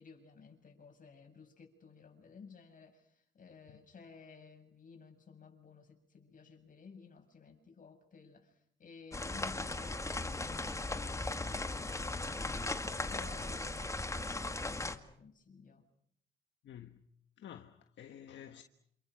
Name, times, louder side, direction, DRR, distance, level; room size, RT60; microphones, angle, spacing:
voice 1, 0.0-12.6 12.9-15.9, left 5 dB, 45° left, 7.2 m, -55 dB
sound 1, 9.1-15.0, left 2 dB, 15° left, 2.0 m, -37 dB
voice 2, 16.6-17.1 17.4-18.6, left 10 dB, 65° left, 1.5 m, -51 dB
28.5 x 27.5 x 6.4 m
cardioid pair, 90°, 20 cm